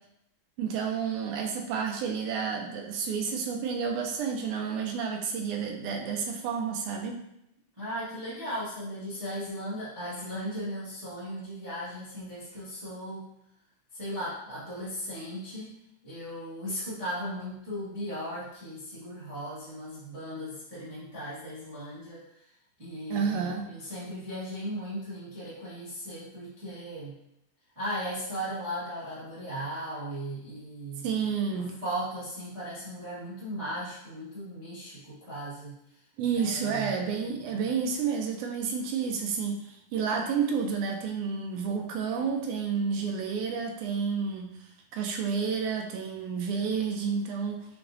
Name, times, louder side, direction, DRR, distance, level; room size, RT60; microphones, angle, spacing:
voice 1, 0.6-7.2 23.1-23.7 31.0-31.7 36.2-39.6 39.9-44.5 44.9-47.7, right 6 dB, 80° right, 3 dB, 1.8 m, -30 dB
voice 2, 7.8-13.3 13.9-15.8 16.0-22.2 22.8-27.1 27.7-31.0 31.5-35.8 36.3-36.9, equal, 20° right, -9 dB, 0.7 m, -37 dB
5.7 x 3.4 x 2.6 m, 0.80 s
omnidirectional pair, 3.9 m